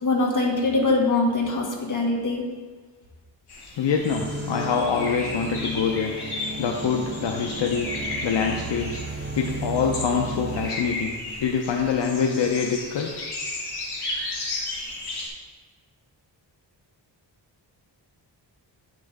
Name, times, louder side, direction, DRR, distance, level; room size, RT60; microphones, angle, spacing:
voice 1, 0.0-2.4, left 2 dB, 45° left, -1 dB, 1.6 m, -23 dB
sound 1, 3.5-15.3, left 2 dB, 60° left, 1.7 m, -34 dB
voice 2, 3.8-6.2 6.6-7.9 8.2-11.1 11.4-13.1, left 6 dB, 80° left, 2 dB, 0.7 m, -25 dB
sound 2, 4.1-10.7, right 2 dB, 25° right, 0.5 m, -34 dB
8.5 x 6.0 x 3.4 m, 1.4 s
wide cardioid pair, 110°, 43 cm